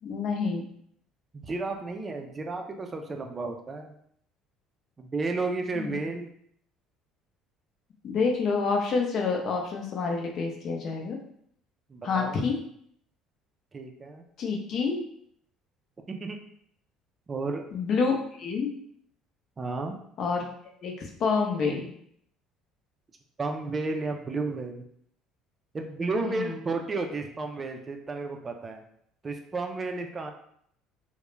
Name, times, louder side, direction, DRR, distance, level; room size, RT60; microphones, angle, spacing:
voice 1, 0.0-0.7 5.7-6.0 8.0-11.2 12.0-12.6 14.4-15.1 17.7-18.8 20.2-20.4 20.8-21.9 26.2-26.6, left 4 dB, 55° left, 1 dB, 0.6 m, -28 dB
voice 2, 1.3-3.9 5.0-6.3 11.9-12.4 13.7-14.2 16.1-16.4 17.3-17.7 19.6-20.0 23.4-24.8 25.7-28.8 29.2-30.3, right 3 dB, 30° right, 4 dB, 0.4 m, -32 dB
2.3 x 2.1 x 3.0 m, 0.67 s
supercardioid pair, 85°, 0 cm